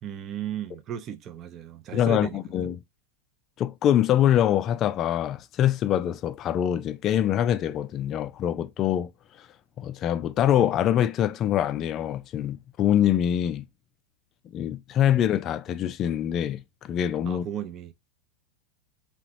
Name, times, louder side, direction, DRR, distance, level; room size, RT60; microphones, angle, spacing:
voice 1, 0.0-2.7 15.2-15.3 17.2-17.9, right 9 dB, 30° right, 0.5 m, -35 dB
voice 2, 1.9-2.8 3.6-9.1 9.8-13.7 14.5-17.5, left 10 dB, 30° left, 0.3 m, -24 dB
3.9 x 2.9 x 2.6 m
figure-of-eight pair, 90°, 0 cm